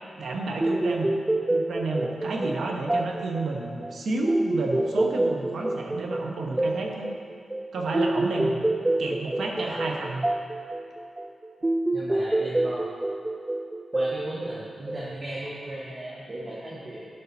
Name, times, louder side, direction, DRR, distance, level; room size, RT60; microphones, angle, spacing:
voice 1, 0.2-1.1 1.5-7.1 7.7-8.5 9.0-10.3, right 2 dB, 80° right, 1 dB, 1.1 m, -30 dB
sound 1, 0.6-15.4, right 2 dB, 15° right, 0.4 m, -28 dB
voice 2, 11.9-12.8 13.9-17.1, right 1 dB, 40° right, -6 dB, 1.4 m, -36 dB
11.0 x 5.4 x 4.3 m, 2.4 s
wide cardioid pair, 95°, 0 cm